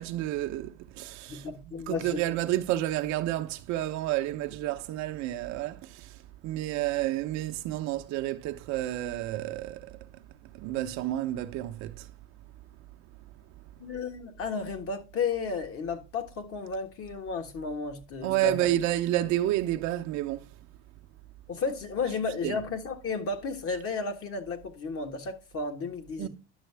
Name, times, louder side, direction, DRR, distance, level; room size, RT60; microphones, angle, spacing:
voice 1, 0.0-1.5 1.9-6.2 6.4-10.1 10.5-12.1 18.2-20.5 22.4-22.6 26.2-26.3, right 14 dB, 55° right, 0.8 m, -30 dB
voice 2, 1.3-2.2 13.8-18.7 21.5-26.3, left 4 dB, 40° left, 1.5 m, -33 dB
10.5 x 6.3 x 3.4 m
hypercardioid pair, 90°, 34 cm